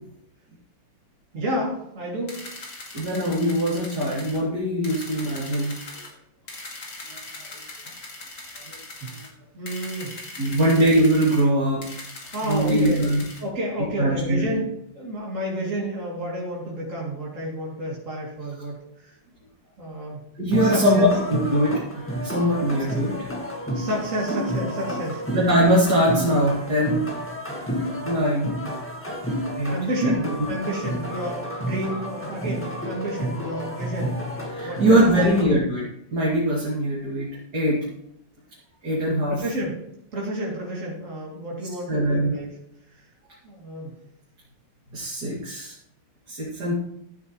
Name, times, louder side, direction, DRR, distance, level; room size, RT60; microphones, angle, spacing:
voice 1, 1.3-2.5 5.9-6.1 7.6-7.7 9.0-9.1 9.5-10.2 12.3-13.0 13.4-14.7 14.9-19.2 19.8-20.2 20.6-21.1 23.7-25.2 29.7-34.1 34.6-35.6 39.3-39.8 40.1-42.5 42.9-43.0 43.4-43.9, equal, 40° right, -5 dB, 3.3 m, -30 dB
sound 1, 2.3-4.4 4.8-6.1 6.5-9.3 9.7-11.4 11.8-13.4, left 2 dB, 55° left, 3.0 m, -40 dB
voice 2, 2.9-5.8 7.1-7.2 8.6-8.8 9.1-9.2 10.4-11.8 12.5-13.2 14.0-14.5 20.4-23.3 25.3-27.1 28.0-28.5 29.6-29.8 30.0-30.3 34.5-35.8 36.1-37.9 38.8-39.4 41.9-42.4 44.9-45.7 46.3-46.7, equal, 55° right, -7 dB, 3.4 m, -22 dB
sound 2, 20.5-35.4, equal, 5° left, 1.7 m, -31 dB
15.0 x 9.3 x 3.2 m, 0.75 s
omnidirectional pair, 2.1 m